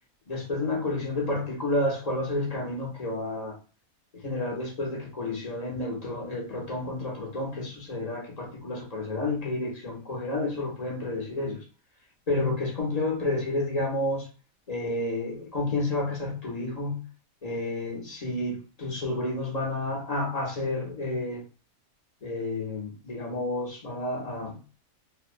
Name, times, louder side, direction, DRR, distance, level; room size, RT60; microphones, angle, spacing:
voice 1, 0.3-3.6 4.1-11.6 12.3-14.3 14.7-17.0 17.4-21.4 22.2-24.6, left 2 dB, 40° left, 0.5 m, -30 dB
2.6 x 2.0 x 2.4 m
omnidirectional pair, 1.6 m